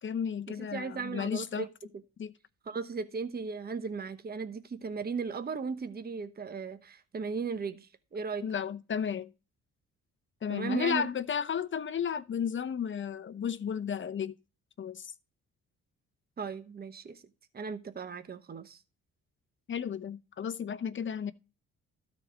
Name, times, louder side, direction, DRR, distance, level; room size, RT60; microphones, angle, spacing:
voice 1, 0.0-1.7 2.2-2.3 8.4-9.3 10.4-14.3 14.8-15.1 19.7-21.3, left 7 dB, 40° left, 0.8 m, -33 dB
voice 2, 0.7-1.7 2.7-8.5 10.5-11.1 16.4-17.2 17.5-18.8, right 5 dB, 30° right, 1.0 m, -36 dB
13.0 x 4.3 x 6.2 m
cardioid pair, 90°, 30 cm